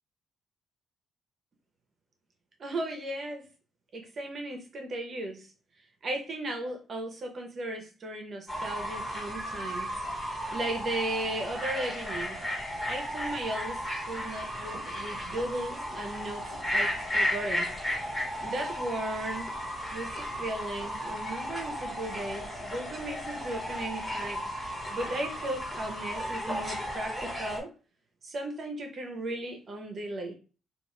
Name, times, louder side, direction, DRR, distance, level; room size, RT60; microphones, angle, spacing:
voice 1, 2.6-3.5 3.9-5.5 5.8-12.4 12.9-17.7 18.0-18.1 18.4-19.5 19.8-27.7 28.2-30.4, right 1 dB, 45° right, 0.9 m, -36 dB
Fowl / Bird, 8.5-27.6, equal, 25° left, 1.4 m, -34 dB
2.5 x 2.5 x 3.1 m
cardioid pair, 90°, 0 cm